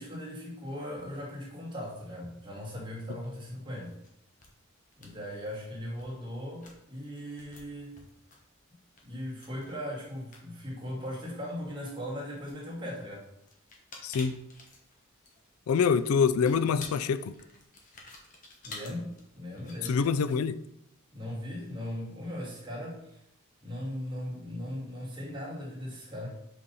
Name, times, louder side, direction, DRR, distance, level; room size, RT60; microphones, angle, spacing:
voice 1, 0.0-4.0 5.0-8.0 9.0-13.2 18.6-20.0 21.1-23.2 23.6-26.3, equal, 20° right, 2.2 m, -38 dB
sound 1, 3.2-3.4 3.7-4.1 4.3-4.5 4.8-5.7 6.0-6.1 6.5-11.8 12.3-20.4, left 3 dB, 35° left, 1.2 m, -51 dB
voice 2, 14.0-14.4 15.7-17.3 19.9-20.6, left 6 dB, 85° left, 0.4 m, -25 dB
5.5 x 4.3 x 5.4 m
head